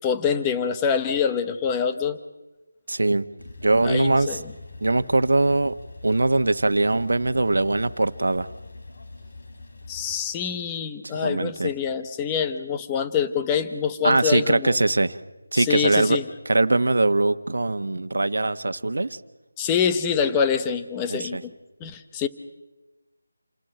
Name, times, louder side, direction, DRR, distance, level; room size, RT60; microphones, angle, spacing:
voice 1, 0.0-2.2 3.8-4.4 9.9-14.8 15.5-16.2 19.6-21.5 21.8-22.3, left 7 dB, 10° left, 8 dB, 0.8 m, -25 dB
voice 2, 2.9-3.3 3.6-4.4 4.8-5.7 6.0-8.5 11.1-11.7 14.0-15.2 15.5-16.2 16.4-19.2 21.1-21.4, right 2 dB, 75° right, 11 dB, 1.2 m, -21 dB
Male speech man speaking / Car / Idling, 3.4-10.2, left 2 dB, 50° left, 3.8 m, -43 dB
28.5 x 19.5 x 7.7 m, 1.1 s
figure-of-eight pair, 175°, 0 cm